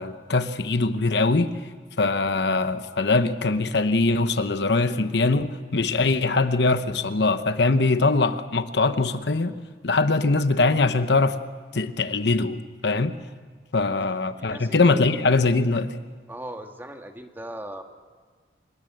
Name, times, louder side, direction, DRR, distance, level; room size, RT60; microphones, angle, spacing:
voice 1, 0.0-1.5 2.0-9.5 9.8-11.4 11.7-13.2 13.7-15.9, left 3 dB, 70° left, 1.0 m, -22 dB
voice 2, 14.1-14.8 16.3-17.8, right 1 dB, 10° right, 1.5 m, -39 dB
25.5 x 21.5 x 7.8 m
head